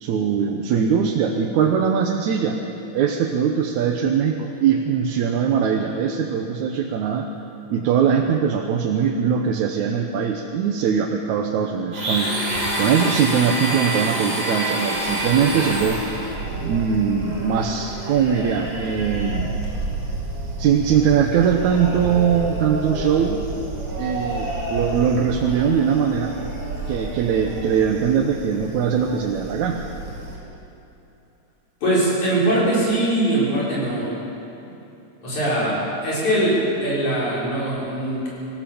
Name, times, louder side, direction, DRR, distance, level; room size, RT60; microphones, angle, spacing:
voice 1, 0.0-2.6 2.9-7.3 7.7-12.3 12.8-16.0 16.6-19.5 20.6-23.5 24.0-26.3 26.9-29.8, right 7 dB, 75° right, 2 dB, 2.3 m, -21 dB
Domestic sounds home sounds, 11.9-16.4, right 1 dB, 30° right, 4.9 m, -25 dB
sound 1, 14.9-30.4, right 2 dB, 50° right, 6.1 m, -31 dB
voice 2, 31.8-34.1 35.2-38.3, right 1 dB, 80° left, -7 dB, 7.6 m, -21 dB
25.5 x 15.5 x 7.1 m, 2.9 s
omnidirectional pair, 3.4 m